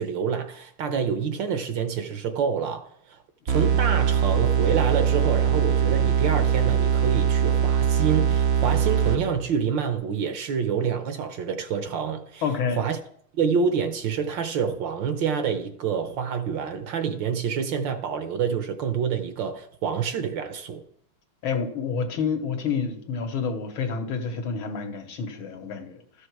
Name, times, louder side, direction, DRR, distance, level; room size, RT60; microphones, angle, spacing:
voice 1, 0.0-3.2 3.5-12.4 12.7-13.0 13.3-20.8, right 6 dB, 65° right, 1.4 m, -27 dB
sound 1, 3.5-9.5, right 8 dB, 90° right, 0.5 m, -22 dB
voice 2, 12.4-12.8 21.4-26.0, left 5 dB, 70° left, 1.9 m, -28 dB
13.0 x 6.5 x 4.7 m
omnidirectional pair, 2.4 m